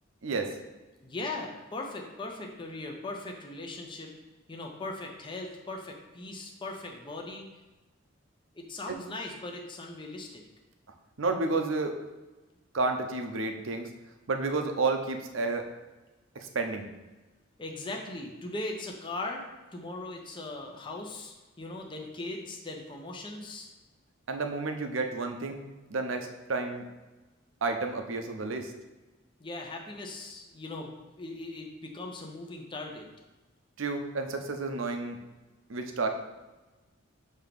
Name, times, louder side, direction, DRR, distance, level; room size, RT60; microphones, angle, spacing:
voice 1, 0.2-0.6 11.2-12.0 12.7-13.9 14.3-15.7 16.3-16.9 24.3-25.6 25.9-26.8 27.6-28.7 33.8-35.2 35.7-36.1, right 3 dB, 75° right, 5 dB, 0.7 m, -31 dB
voice 2, 1.0-4.1 4.5-7.5 8.5-10.4 17.6-23.7 29.4-33.1, left 2 dB, 25° left, 1 dB, 0.7 m, -39 dB
6.4 x 2.9 x 5.1 m, 1.2 s
head